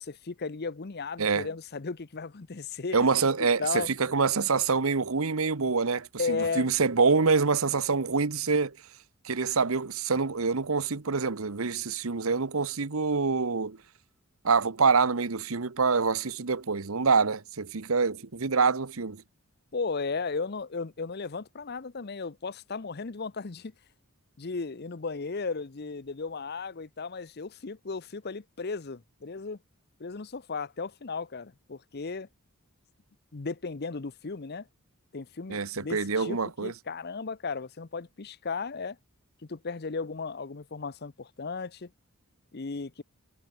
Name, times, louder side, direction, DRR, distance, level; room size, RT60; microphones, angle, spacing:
voice 1, 0.0-3.1 3.4-3.9 6.2-6.7 19.7-23.7 24.4-29.6 30.0-32.3 33.3-34.7 35.1-39.0 39.4-41.9 42.5-43.0, left 4 dB, 50° left, 0.7 m, -35 dB
voice 2, 2.9-8.8 9.2-13.8 14.4-19.2 35.5-36.7, right 4 dB, 75° right, 1.0 m, -26 dB
head